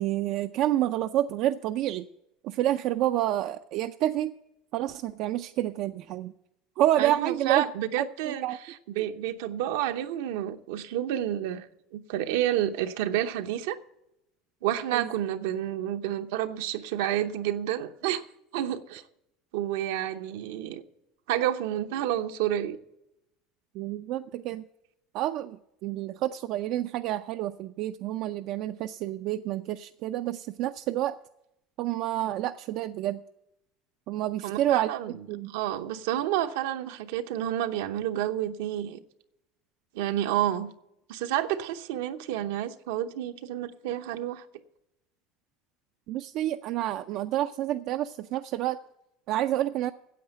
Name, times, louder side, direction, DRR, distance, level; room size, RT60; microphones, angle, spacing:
voice 1, 0.0-2.1 2.4-4.3 4.7-6.3 6.8-7.7 8.0-8.6 14.9-15.1 23.7-24.6 25.1-31.2 31.8-33.2 34.1-34.9 35.3-35.5 46.1-48.8 49.3-49.9, right 13 dB, 60° right, 0.4 m, -28 dB
voice 2, 7.0-8.4 8.9-11.7 11.9-13.8 14.6-18.2 18.5-19.0 19.5-20.8 21.3-22.8 34.4-39.0 39.9-40.7 41.1-44.4, right 12 dB, 80° right, 0.8 m, -29 dB
9.4 x 7.9 x 8.8 m
supercardioid pair, 100°, 0 cm